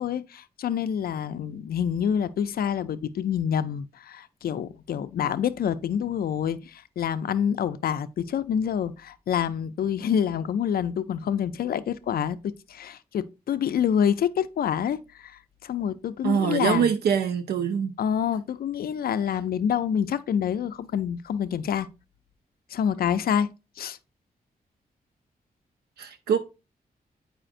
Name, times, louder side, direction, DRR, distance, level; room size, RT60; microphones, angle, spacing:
voice 1, 0.0-16.9 18.0-21.9 22.7-23.5 23.8-24.0, left 8 dB, 70° left, 0.4 m, -27 dB
voice 2, 16.2-17.9 26.0-26.4, right 7 dB, 85° right, 0.5 m, -24 dB
8.8 x 4.9 x 2.5 m
wide cardioid pair, 170°, 16 cm